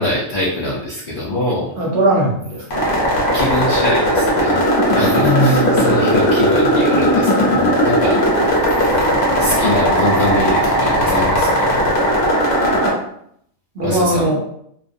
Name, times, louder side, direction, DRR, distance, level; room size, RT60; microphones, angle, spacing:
voice 1, 0.0-1.7 3.3-4.6 4.9-8.2 9.4-11.8 13.8-14.4, left 1 dB, 70° left, -4 dB, 0.4 m, -23 dB
voice 2, 1.8-2.9 5.2-5.9 13.7-14.4, right 1 dB, 60° right, -2 dB, 0.8 m, -19 dB
sound 1, 2.7-12.9, equal, 50° left, 0.8 m, -16 dB
2.3 x 2.1 x 2.5 m, 0.69 s
omnidirectional pair, 1.4 m